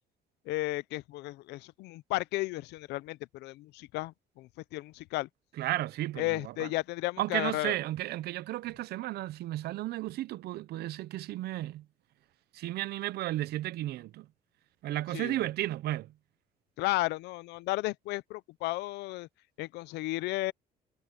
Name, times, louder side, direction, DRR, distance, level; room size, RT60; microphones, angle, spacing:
voice 1, 0.5-5.3 6.2-7.7 15.1-15.4 16.8-19.3 19.6-20.5, left 19 dB, 85° left, 0.6 m, -34 dB
voice 2, 5.6-6.7 7.2-11.8 12.5-14.3 14.8-16.1, right 15 dB, 70° right, 0.7 m, -33 dB
cardioid pair, 110°, 17 cm